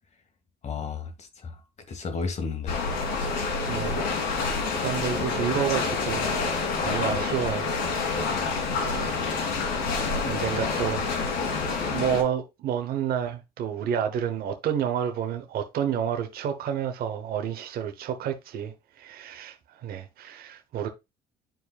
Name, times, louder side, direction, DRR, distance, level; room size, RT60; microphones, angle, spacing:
voice 1, 0.6-1.6 1.9-2.8, left 5 dB, 40° left, 1.5 m, -33 dB
sound 1, 2.7-12.2, left 4 dB, 80° left, 2.1 m, -28 dB
voice 2, 3.7-4.0 4.4-6.3 6.8-7.7 8.7-9.8 10.2-11.5 11.9-20.9, right 8 dB, 65° right, 0.9 m, -30 dB
10.5 x 4.7 x 2.3 m
cardioid pair, 110°, 17 cm